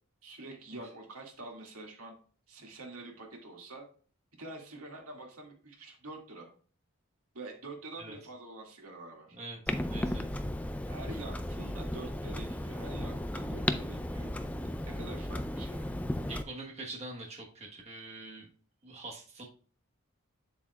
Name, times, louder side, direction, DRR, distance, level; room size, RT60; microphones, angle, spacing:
voice 1, 0.2-2.1 2.5-3.9 4.4-6.5 7.3-9.4 10.9-14.3 15.0-15.9, right 2 dB, 85° right, 0 dB, 2.2 m, -46 dB
voice 2, 9.4-10.2 16.3-18.5 18.8-19.4, right 2 dB, 30° right, 0 dB, 1.3 m, -44 dB
Clock, 9.7-16.4, left 1 dB, 5° left, 0.3 m, -35 dB
7.6 x 7.5 x 2.4 m, 0.41 s
head